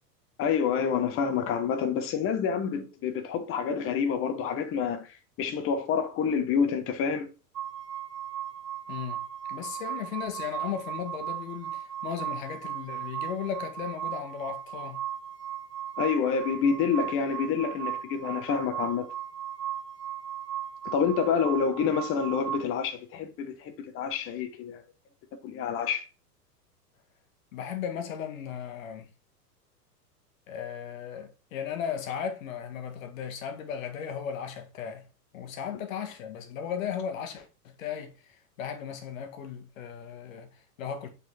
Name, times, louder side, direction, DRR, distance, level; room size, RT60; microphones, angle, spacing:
voice 1, 0.4-7.3 16.0-19.1 20.8-24.8 25.4-26.0, left 6 dB, 25° left, 1.2 m, -28 dB
sound 1, 7.6-22.6, right 10 dB, 80° right, 0.7 m, -37 dB
voice 2, 8.9-9.2 9.5-15.0 27.5-29.1 30.5-35.1 35.3-41.1, left 8 dB, 55° left, 1.6 m, -36 dB
6.2 x 4.4 x 4.3 m
figure-of-eight pair, 100°, 48 cm